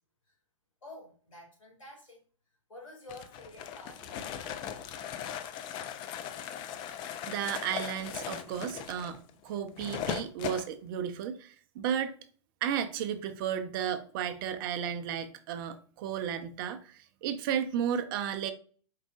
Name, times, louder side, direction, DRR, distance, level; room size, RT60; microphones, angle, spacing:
voice 1, 0.8-2.2 2.7-4.8, left 1 dB, 85° left, 2.1 m, -50 dB
sound 1, 3.1-10.7, left 9 dB, 30° left, 0.4 m, -39 dB
voice 2, 7.3-12.2 12.6-18.5, right 9 dB, 45° right, 0.5 m, -33 dB
4.7 x 3.6 x 2.4 m
figure-of-eight pair, 110°, 16 cm